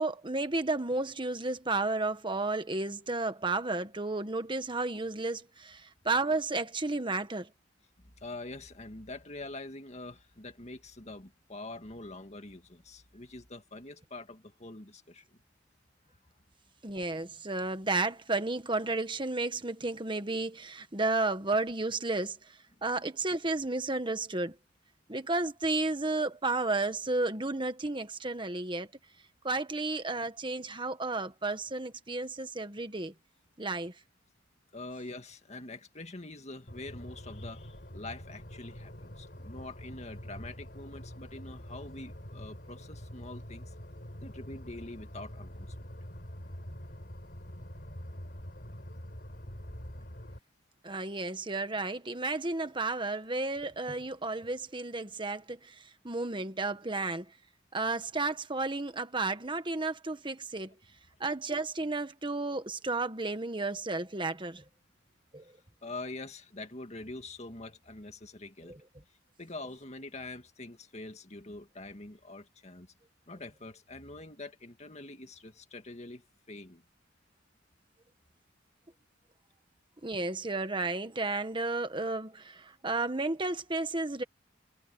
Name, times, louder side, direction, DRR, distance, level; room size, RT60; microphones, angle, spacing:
voice 1, 0.0-7.5 16.8-22.4 22.8-24.5 25.1-28.9 29.4-33.1 33.6-33.9 50.8-57.2 57.7-60.7 61.2-64.6 65.3-65.4 68.7-68.8 80.0-84.2, right 3 dB, 25° right, 1.5 m, -32 dB
voice 2, 8.0-15.3 34.7-43.7 44.2-45.9 48.1-48.2 48.7-48.9 65.8-68.7 69.4-72.9 73.3-76.8, left 2 dB, 35° left, 2.1 m, -45 dB
sound 1, 36.7-50.4, equal, 50° left, 5.0 m, -45 dB
head